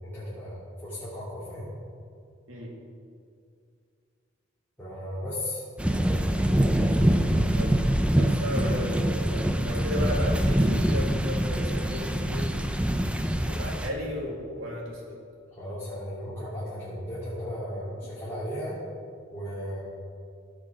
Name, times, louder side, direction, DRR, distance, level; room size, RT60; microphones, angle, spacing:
voice 1, 0.0-1.7 4.8-5.6 15.5-18.7 19.3-19.8, equal, 10° left, -12 dB, 3.3 m, -35 dB
sound 1, 5.8-13.9, right 1 dB, 5° right, 0.5 m, -24 dB
voice 2, 8.2-12.6 13.5-15.2, left 1 dB, 90° right, -2 dB, 2.6 m, -34 dB
17.0 x 6.4 x 5.1 m, 2.3 s
head